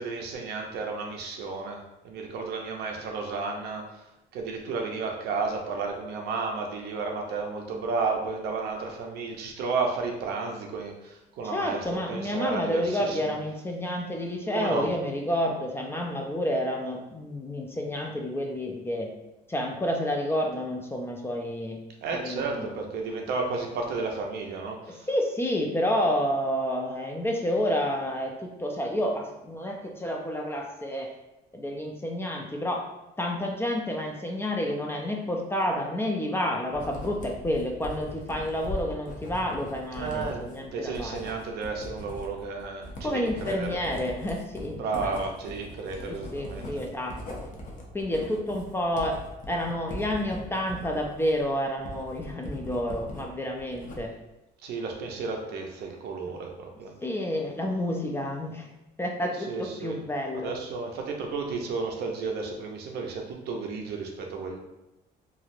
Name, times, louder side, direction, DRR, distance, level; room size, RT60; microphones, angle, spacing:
voice 1, 0.0-3.8 4.3-13.3 14.5-14.9 22.0-25.1 39.9-43.8 44.8-46.8 54.6-56.9 59.5-60.0 60.3-64.6, right 4 dB, 75° right, 1 dB, 0.6 m, -32 dB
voice 2, 11.4-19.1 19.5-21.8 22.1-22.7 24.9-31.1 31.5-32.9 33.2-41.2 43.0-45.1 46.1-47.4 47.9-49.2 49.5-54.1 56.2-56.3 57.0-58.7 59.0-60.5, left 1 dB, 15° left, 2 dB, 0.4 m, -29 dB
Writing, 36.7-53.3 53.6-54.3, left 1 dB, 50° left, 0.7 m, -40 dB
3.1 x 2.4 x 2.6 m, 0.96 s
cardioid pair, 110°, 17 cm